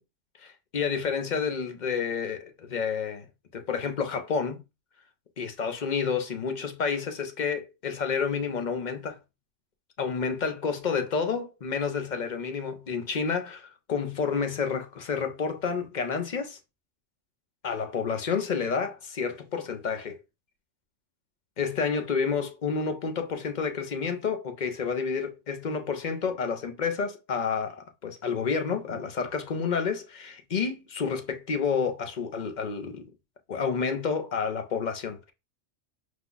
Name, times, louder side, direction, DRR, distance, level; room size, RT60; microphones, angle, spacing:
voice 1, 0.4-3.3 3.5-4.6 5.4-9.2 10.0-16.6 17.6-20.2 21.6-33.0 33.5-35.3, left 6 dB, 45° left, 0.7 m, -30 dB
5.0 x 2.3 x 3.9 m
omnidirectional pair, 1.3 m